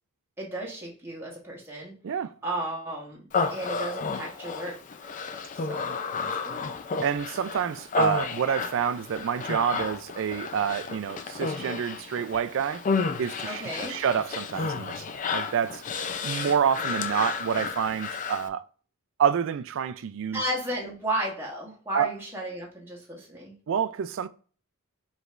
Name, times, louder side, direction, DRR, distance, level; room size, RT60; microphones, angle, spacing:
voice 1, 0.4-1.9 2.4-4.8 5.5-6.8 13.4-14.0 20.3-23.5, right 1 dB, 10° right, 1.2 m, -34 dB
Human voice, 3.3-18.5, left 4 dB, 35° left, 0.3 m, -32 dB
voice 2, 7.0-12.9 13.2-15.1 15.3-18.6 19.2-20.4 21.9-22.1 23.7-24.3, right 7 dB, 60° right, 0.3 m, -28 dB
5.0 x 3.3 x 2.5 m
head